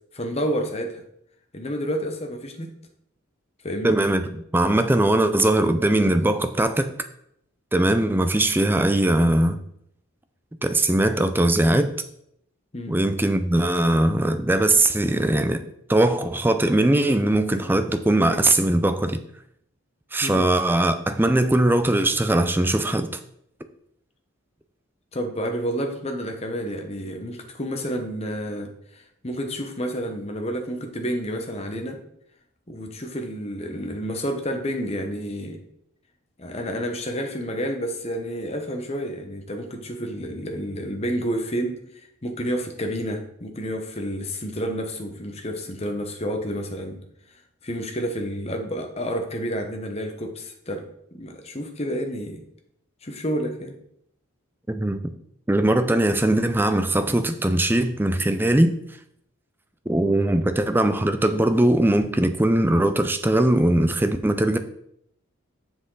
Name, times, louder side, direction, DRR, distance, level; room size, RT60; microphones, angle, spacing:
voice 1, 0.1-1.0 1.5-2.7 3.6-4.0 12.7-13.0 20.2-20.4 25.1-32.0 32.7-35.6 36.4-41.8 42.2-47.0 47.6-52.4 53.0-53.8, equal, 30° left, 4 dB, 1.0 m, -30 dB
voice 2, 3.8-4.2 4.5-6.9 7.7-9.6 10.6-11.9 12.9-15.6 15.9-19.2 20.1-23.2 54.7-55.1 55.5-58.8 59.9-64.6, right 1 dB, 10° right, 9 dB, 0.4 m, -20 dB
7.5 x 6.1 x 3.9 m, 0.74 s
head